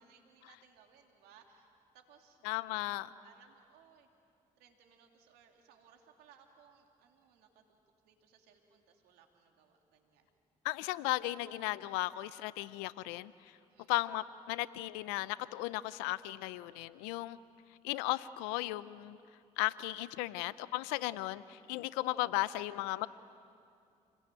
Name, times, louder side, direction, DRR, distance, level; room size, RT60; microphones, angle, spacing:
voice 1, 0.0-2.5 3.2-4.1 4.6-7.8 8.0-10.3 13.7-13.9 20.3-20.6 22.4-23.1, right 7 dB, 80° right, 3 dB, 2.8 m, -63 dB
voice 2, 2.4-3.1 10.6-13.5 13.9-17.4 17.8-19.2 19.6-23.1, left 18 dB, 85° left, 17 dB, 0.6 m, -36 dB
28.5 x 20.5 x 9.1 m, 2.5 s
hypercardioid pair, 55°, 16 cm